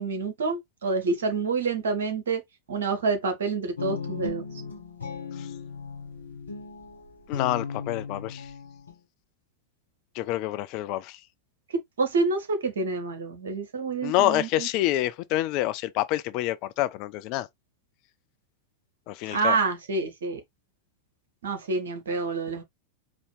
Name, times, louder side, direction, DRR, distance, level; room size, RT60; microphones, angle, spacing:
voice 1, 0.0-2.4 2.7-4.4 12.0-14.7 19.3-20.4 21.4-22.6, right 4 dB, 65° right, 1.1 m, -27 dB
Guitar, 3.8-8.9, left 5 dB, 75° left, 1.1 m, -37 dB
voice 2, 7.3-8.5 10.1-11.2 14.0-17.5 19.1-19.6, left 15 dB, 40° left, 0.4 m, -27 dB
4.2 x 2.7 x 3.1 m
figure-of-eight pair, 90°, 0 cm